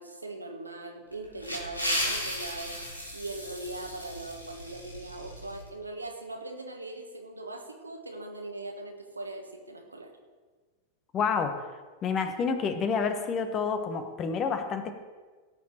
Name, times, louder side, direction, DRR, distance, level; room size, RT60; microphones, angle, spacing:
voice 1, 0.0-10.1, right 2 dB, 80° right, 3 dB, 1.6 m, -40 dB
sound 1, 1.1-5.6, equal, 90° left, 2.2 m, -35 dB
voice 2, 11.1-11.6 12.0-14.9, left 5 dB, 30° left, 8 dB, 1.3 m, -29 dB
17.5 x 7.5 x 4.5 m, 1.4 s
figure-of-eight pair, 90°, 0 cm